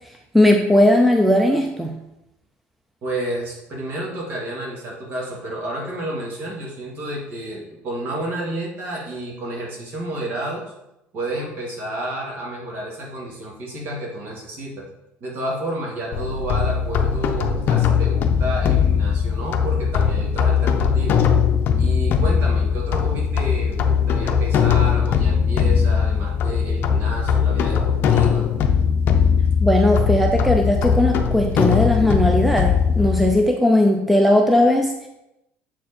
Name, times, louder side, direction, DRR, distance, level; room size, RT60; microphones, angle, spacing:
voice 1, 0.3-1.9 29.6-35.1, left 1 dB, ahead, 3 dB, 0.5 m, -17 dB
voice 2, 3.0-10.6 11.1-14.8 15.2-21.2 21.8-28.5, right 1 dB, 50° right, -2 dB, 2.1 m, -30 dB
sound 1, 16.1-33.3, left 7 dB, 45° left, 0.6 m, -19 dB
7.3 x 4.6 x 4.3 m, 0.89 s
cardioid pair, 155°, 5 cm